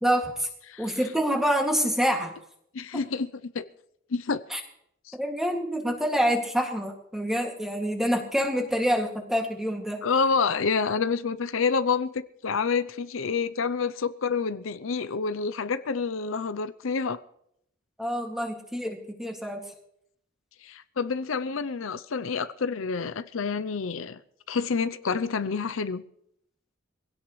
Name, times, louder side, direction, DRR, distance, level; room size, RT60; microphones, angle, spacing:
voice 1, 0.0-0.5 0.8-2.3 4.5-4.6 5.1-10.0 18.0-19.6, equal, ahead, 2.3 m, -26 dB
voice 2, 2.7-3.6 4.1-4.4 5.1-5.2 10.0-17.2 20.6-24.2 24.5-26.0, left 5 dB, 75° left, 0.6 m, -28 dB
22.0 x 16.5 x 3.2 m
head